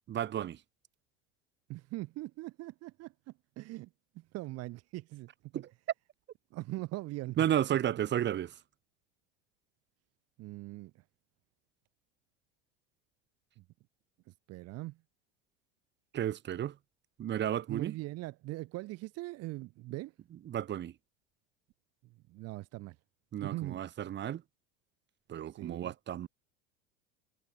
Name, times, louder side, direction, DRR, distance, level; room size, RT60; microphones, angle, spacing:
voice 1, 0.1-0.6 5.5-5.7 7.4-8.5 16.1-16.7 17.2-17.9 20.5-20.9 23.3-24.4 25.3-26.3, right 11 dB, 35° right, 1.7 m, -32 dB
voice 2, 1.7-3.9 4.1-5.6 6.5-7.4 10.4-11.0 13.6-13.7 14.3-15.0 17.7-20.1 22.3-23.0 23.4-23.8 25.5-25.9, right 19 dB, 50° right, 2.6 m, -41 dB
hypercardioid pair, 85°, 31 cm